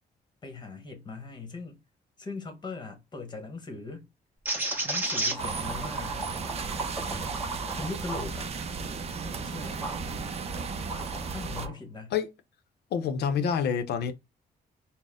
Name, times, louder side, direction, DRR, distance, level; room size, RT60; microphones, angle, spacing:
voice 1, 0.4-1.8 2.2-4.0 4.8-6.2 7.7-8.5 9.4-9.8 11.3-12.1, left 3 dB, 25° left, 1.0 m, -40 dB
sound 1, 4.5-10.0 10.5-11.7, right 2 dB, 10° right, 1.0 m, -34 dB
sound 2, 5.4-11.7, right 5 dB, 40° right, 0.5 m, -35 dB
voice 2, 12.9-14.1, left 7 dB, 80° left, 0.6 m, -27 dB
4.1 x 2.1 x 3.6 m
cardioid pair, 160°, 17 cm